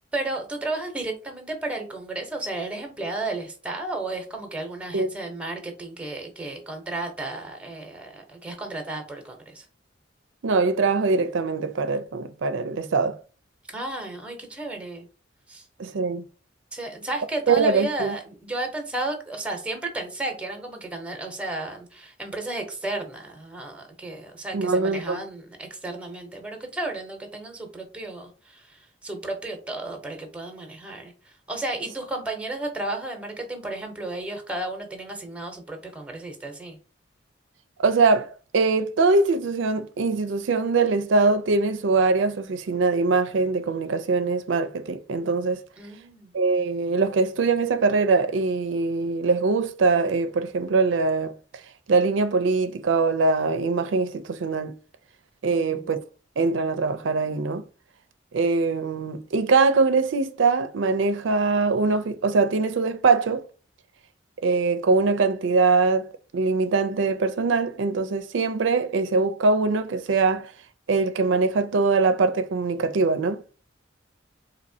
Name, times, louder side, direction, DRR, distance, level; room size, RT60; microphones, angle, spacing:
voice 1, 0.1-9.7 13.7-15.1 15.5-15.7 16.7-36.8 45.8-46.3 55.4-55.9, right 2 dB, 5° right, 0.8 m, -33 dB
voice 2, 10.4-13.2 15.8-16.3 17.5-18.1 24.5-25.2 37.8-45.6 46.3-51.4 51.9-54.8 55.4-56.0 56.4-57.6 58.3-63.4 64.4-66.1 66.3-70.5 70.9-73.4, right 4 dB, 80° right, 0.4 m, -22 dB
4.1 x 2.8 x 2.7 m
head